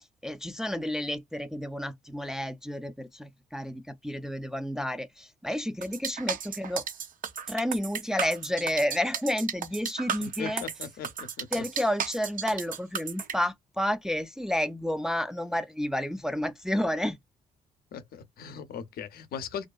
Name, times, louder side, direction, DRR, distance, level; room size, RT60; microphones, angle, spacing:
voice 1, 0.2-6.8 7.5-10.6 11.5-17.2, left 1 dB, 5° right, 0.4 m, -30 dB
sound 1, 5.8-13.3, right 7 dB, 50° right, 0.7 m, -34 dB
voice 2, 10.2-11.6 17.9-19.7, left 7 dB, 60° left, 0.6 m, -39 dB
2.6 x 2.1 x 2.3 m
hypercardioid pair, 45°, 18 cm